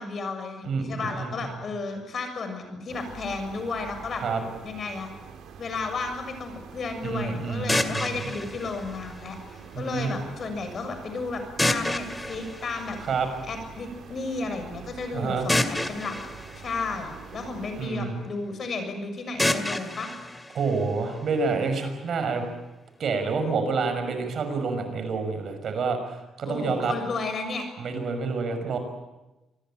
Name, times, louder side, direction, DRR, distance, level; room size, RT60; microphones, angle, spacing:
voice 1, 0.0-4.2 4.6-5.1 5.6-13.0 13.4-16.2 16.6-20.1 26.5-27.6, left 3 dB, 50° left, 7 dB, 6.8 m, -33 dB
voice 2, 0.6-1.3 4.2-4.4 7.0-8.2 9.7-10.1 13.1-13.3 15.1-15.5 17.8-18.2 20.5-22.5 23.0-26.9 27.8-28.8, right 4 dB, 60° right, 7 dB, 5.9 m, -28 dB
sound 1, 2.9-17.9, right 6 dB, 75° right, 4.2 m, -45 dB
sound 2, 7.7-9.7 11.6-13.6 15.5-17.7 19.4-21.4, left 1 dB, 10° left, 2.3 m, -30 dB
26.5 x 20.0 x 9.0 m, 1.0 s
cardioid pair, 90°, 0 cm